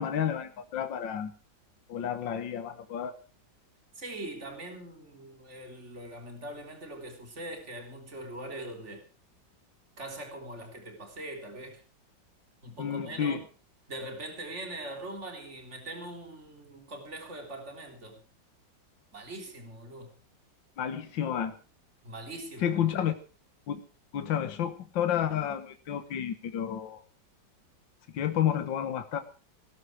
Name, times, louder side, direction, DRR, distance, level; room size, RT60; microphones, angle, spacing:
voice 1, 0.0-1.3 1.9-3.1 12.8-13.4 20.8-21.6 22.6-23.1 23.7-23.8 24.1-27.0 28.1-29.2, left 9 dB, 75° left, 9 dB, 2.0 m, -30 dB
voice 2, 3.9-9.1 10.0-11.8 12.6-13.4 13.9-18.2 19.1-20.1 22.0-23.0, right 1 dB, 35° right, 4 dB, 3.8 m, -42 dB
19.0 x 12.5 x 4.7 m, 0.36 s
omnidirectional pair, 2.0 m